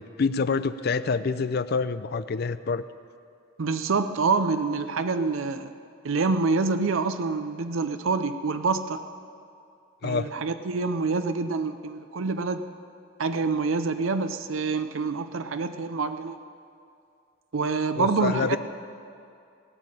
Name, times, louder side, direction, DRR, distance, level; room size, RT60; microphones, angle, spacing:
voice 1, 0.0-2.8 10.0-10.3 18.0-18.6, left 4 dB, 50° left, 14 dB, 0.5 m, -27 dB
voice 2, 3.6-5.7 6.0-9.0 10.0-12.6 13.2-16.4 17.5-18.6, right 4 dB, 90° right, 10 dB, 0.6 m, -26 dB
17.0 x 6.6 x 9.9 m, 2.5 s
head